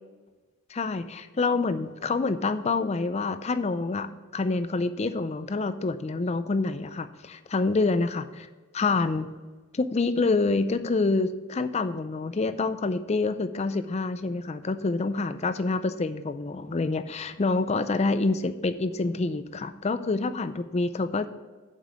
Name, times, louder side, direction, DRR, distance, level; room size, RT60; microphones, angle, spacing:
voice 1, 0.7-8.5 8.7-9.3 9.8-21.3, left 3 dB, 30° left, 11 dB, 0.4 m, -27 dB
7.5 x 5.3 x 7.4 m, 1.3 s
head